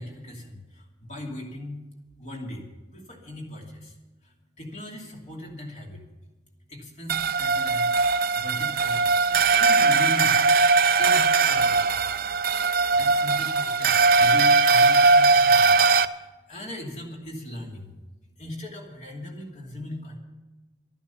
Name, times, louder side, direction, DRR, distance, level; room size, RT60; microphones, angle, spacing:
voice 1, 0.0-1.8 2.2-3.9 4.2-6.0 6.7-10.4 10.8-12.1 12.9-15.8 16.1-17.9 18.4-20.2, left 1 dB, 40° left, 0 dB, 2.7 m, -39 dB
sound 1, 7.1-16.1, right 4 dB, 55° right, 0.5 m, -20 dB
12.0 x 11.5 x 7.0 m, 1.1 s
head